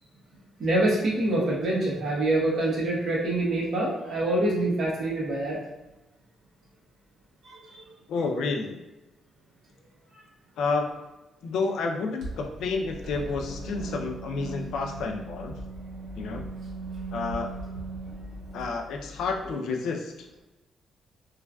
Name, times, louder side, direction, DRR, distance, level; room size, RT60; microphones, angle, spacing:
voice 1, 0.6-5.6 7.4-7.8, right 1 dB, 50° right, -4 dB, 0.9 m, -26 dB
voice 2, 8.1-8.8 10.6-10.9 11.4-15.6 16.2-16.4 17.1-17.5 18.5-20.1, left 4 dB, 80° left, 3 dB, 0.4 m, -30 dB
sound 1, 12.2-19.5, right 2 dB, 80° right, 1.1 m, -38 dB
3.1 x 2.4 x 2.2 m, 1.0 s
cardioid pair, 150°, 0 cm